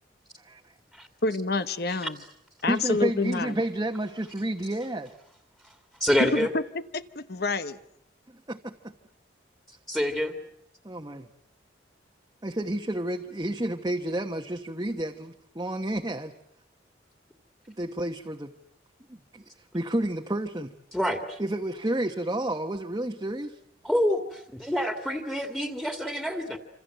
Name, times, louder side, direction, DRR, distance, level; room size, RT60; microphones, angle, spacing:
voice 1, 1.2-2.2 2.6-3.6 6.2-7.8, left 3 dB, 55° left, 13 dB, 1.0 m, -28 dB
voice 2, 2.7-5.1 8.5-8.9 10.8-11.3 12.4-16.3 17.7-18.5 19.1-19.4 19.7-20.7 21.4-23.6, right 1 dB, 20° right, 3 dB, 1.1 m, -30 dB
voice 3, 6.0-6.5 9.9-10.4 20.9-21.4 23.8-26.6, equal, ahead, 6 dB, 2.1 m, -27 dB
27.5 x 26.5 x 7.9 m, 0.77 s
head